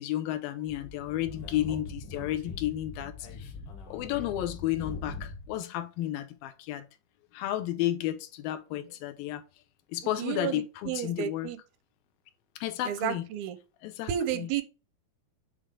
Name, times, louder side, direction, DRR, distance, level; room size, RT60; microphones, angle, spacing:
voice 1, 0.0-3.5 3.9-6.9 7.3-9.4 9.9-11.5 12.6-13.2 13.8-14.5, left 13 dB, 85° left, 2.5 m, -32 dB
Speech / Wind, 0.7-5.6, left 3 dB, 65° left, 2.6 m, -42 dB
voice 2, 10.0-11.6 12.8-13.6 14.1-14.6, right 10 dB, 90° right, 2.6 m, -32 dB
7.9 x 3.3 x 3.6 m
omnidirectional pair, 4.2 m